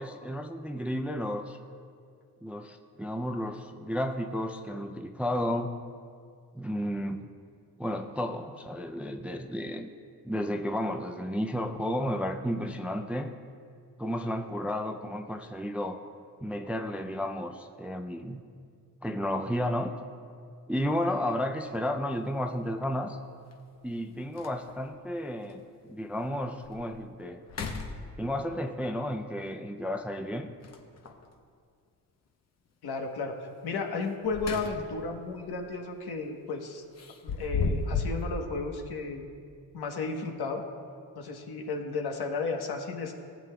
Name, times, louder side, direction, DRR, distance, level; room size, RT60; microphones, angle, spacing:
voice 1, 0.0-1.6 2.4-5.7 6.5-7.3 7.8-9.9 10.2-13.3 14.0-16.0 16.4-18.4 19.0-19.9 20.7-23.2 23.8-25.6 25.9-27.4 28.2-30.5, equal, 5° right, 4 dB, 0.3 m, -32 dB
sound 1, 21.6-21.8 23.5-23.6 24.0-24.1 24.4-24.9 25.5-25.6 26.1-26.2 26.6-27.0 27.4-28.5 30.6-31.3 34.0-35.1 35.4-35.7 37.0-38.3, left 4 dB, 40° left, 0.8 m, -34 dB
voice 2, 32.8-33.4 33.6-36.8 37.2-39.2 39.7-40.6 41.1-43.2, left 4 dB, 75° left, 3 dB, 1.2 m, -33 dB
18.5 x 7.6 x 2.3 m, 2.2 s
cardioid pair, 110°, 39 cm